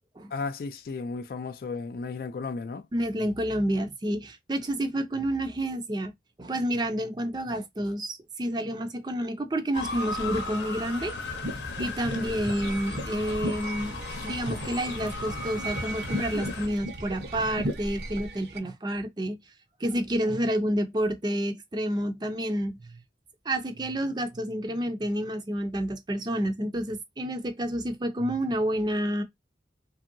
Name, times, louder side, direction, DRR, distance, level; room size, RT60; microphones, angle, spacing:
voice 1, 0.3-2.9 12.0-12.4, left 4 dB, 55° left, 0.3 m, -34 dB
voice 2, 2.9-6.1 6.4-11.1 11.8-14.0 14.2-19.4 19.8-23.0 23.5-29.2, right 1 dB, 25° right, 0.4 m, -29 dB
Motor vehicle (road) / Siren, 9.7-16.7, left 3 dB, 80° left, 0.8 m, -36 dB
sound 1, 11.3-18.3, equal, 90° right, 1.0 m, -36 dB
sound 2, 12.6-18.6, right 4 dB, 65° right, 0.6 m, -42 dB
2.8 x 2.7 x 2.6 m
head